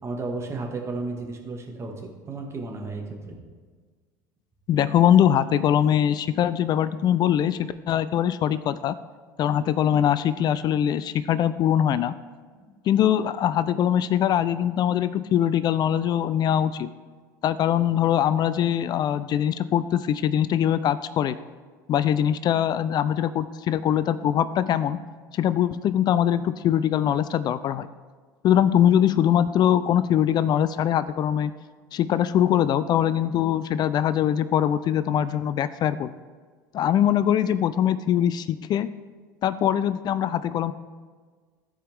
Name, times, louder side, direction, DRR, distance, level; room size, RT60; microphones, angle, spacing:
voice 1, 0.0-3.4 12.6-12.7, right 3 dB, 25° right, 0 dB, 2.0 m, -33 dB
voice 2, 4.7-8.9 9.4-12.1 12.9-16.9 17.4-21.4 21.9-25.0 25.3-27.9 28.4-31.5 31.9-36.1 36.7-38.9 39.4-40.7, left 10 dB, 40° left, 15 dB, 0.3 m, -22 dB
14.5 x 4.9 x 3.5 m, 1.5 s
hypercardioid pair, 70°, 10 cm